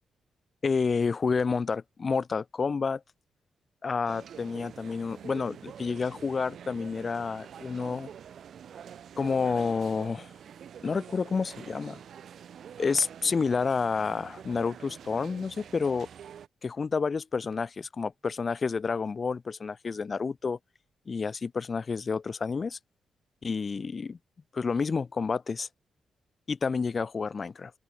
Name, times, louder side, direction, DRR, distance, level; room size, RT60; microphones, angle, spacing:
voice 1, 0.6-3.0 3.8-8.1 9.2-10.3 10.8-12.0 12.8-16.1 16.6-20.6 21.1-22.8 23.4-24.2 24.5-25.7 26.5-27.7, left 5 dB, 40° left, 1.0 m, -29 dB
sound 1, 4.1-16.5, right 8 dB, 70° right, 6.4 m, -46 dB
open air
cardioid pair, 95°, 0 cm